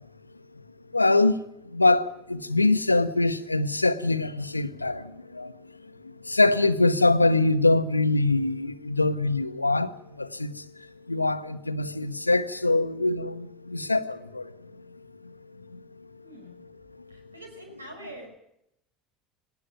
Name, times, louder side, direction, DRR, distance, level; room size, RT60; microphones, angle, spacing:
voice 1, 0.9-1.3 1.7-5.0 5.3-5.5 6.3-9.9 10.2-10.5 11.1-14.4, left 2 dB, 90° left, 0.8 m, -23 dB
voice 2, 16.2-16.6 17.1-18.4, right 1 dB, 85° right, 5.6 m, -44 dB
19.5 x 18.5 x 9.2 m
figure-of-eight pair, 70°, 0 cm